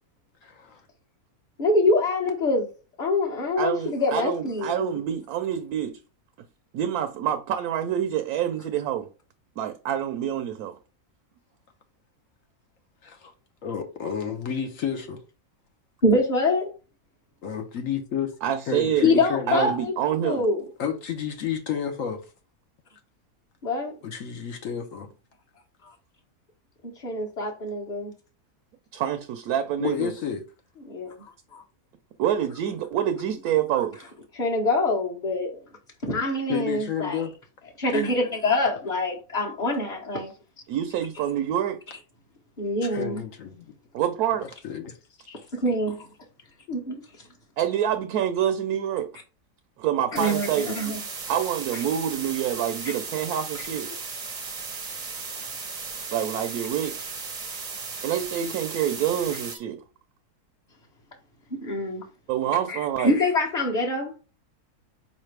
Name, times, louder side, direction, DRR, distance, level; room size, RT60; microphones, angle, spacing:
voice 1, 0.4-0.8 13.0-13.3 13.6-15.2 17.4-18.3 18.7-19.7 20.8-22.2 24.0-25.1 29.8-30.4 36.5-37.3 42.8-43.6 44.6-45.0 45.3-45.4, left 8 dB, 65° left, 1.1 m, -31 dB
voice 2, 1.6-2.7 3.0-4.9 16.0-16.7 19.0-20.6 23.6-23.9 27.0-28.1 30.9-31.1 31.5-31.6 34.3-35.6 36.0-37.2 37.8-40.3 42.6-43.2 45.5-46.1 46.7-46.9 50.1-51.0 61.6-62.0 62.7-64.1, left 2 dB, 35° left, 1.1 m, -25 dB
voice 3, 3.6-6.0 6.7-9.1 9.6-10.8 18.4-19.1 19.5-20.4 28.9-30.1 32.2-34.0 40.7-41.8 43.9-44.5 47.6-49.1 49.8-50.7 51.3-53.9 56.1-57.0 58.0-59.8 62.3-63.2, right 10 dB, 80° right, 1.1 m, -27 dB
sound 1, 50.2-59.6, right 4 dB, 35° right, 0.6 m, -36 dB
5.1 x 3.2 x 3.2 m
omnidirectional pair, 1.6 m